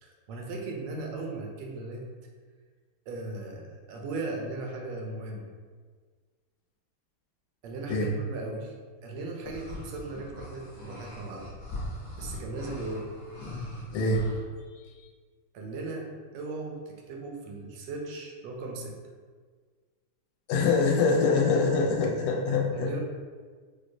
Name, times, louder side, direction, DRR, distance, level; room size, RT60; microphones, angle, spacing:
voice 1, 0.0-2.0 3.1-5.5 7.6-8.7 9.0-11.5 12.2-13.1 15.5-19.0 22.5-23.0, right 3 dB, 75° right, 0 dB, 1.0 m, -37 dB
sound 1, 9.4-14.4, left 1 dB, 55° left, 1.0 m, -40 dB
voice 2, 13.9-14.3 20.5-22.9, left 4 dB, 80° left, 0 dB, 1.4 m, -24 dB
4.5 x 2.1 x 2.6 m, 1.5 s
omnidirectional pair, 2.4 m